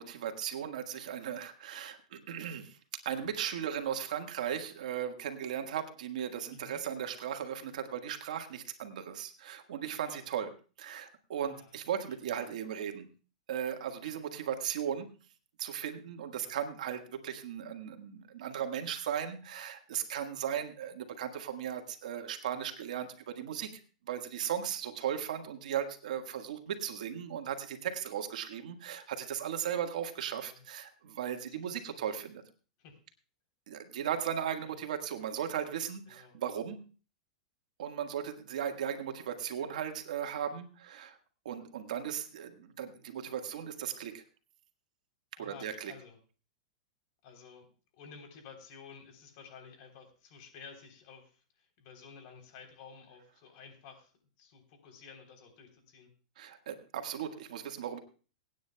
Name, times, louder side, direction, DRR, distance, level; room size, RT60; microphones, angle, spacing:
voice 1, 0.0-10.5 10.8-13.1 13.5-15.1 15.6-23.7 24.1-32.4 33.7-36.8 37.8-41.2 41.4-44.2 45.4-45.9 56.4-58.0, right 9 dB, 75° right, 6 dB, 1.6 m, -37 dB
voice 2, 6.5-6.8 10.0-10.5 11.4-11.8 12.1-12.2 16.4-16.6 30.3-30.6 31.5-32.0 32.8-33.0 34.6-34.8 36.1-36.4 45.4-46.2 47.2-47.7 47.9-54.1 54.4-56.1, left 6 dB, 55° left, 3 dB, 3.5 m, -53 dB
25.0 x 9.2 x 2.3 m, 0.36 s
hypercardioid pair, 130°, 4 cm